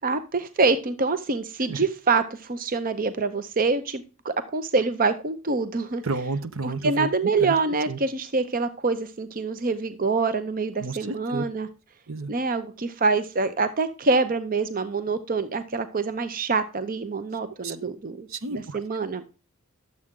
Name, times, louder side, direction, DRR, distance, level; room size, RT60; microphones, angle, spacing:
voice 1, 0.0-6.0 6.6-11.7 12.3-19.2, right 3 dB, 40° right, 11 dB, 0.7 m, -25 dB
voice 2, 6.0-7.1 7.4-7.6 7.9-8.0 10.8-11.4 12.1-12.3 17.6-17.9 18.3-18.8, right 3 dB, 65° right, 12 dB, 0.9 m, -31 dB
11.0 x 7.5 x 3.7 m, 0.33 s
head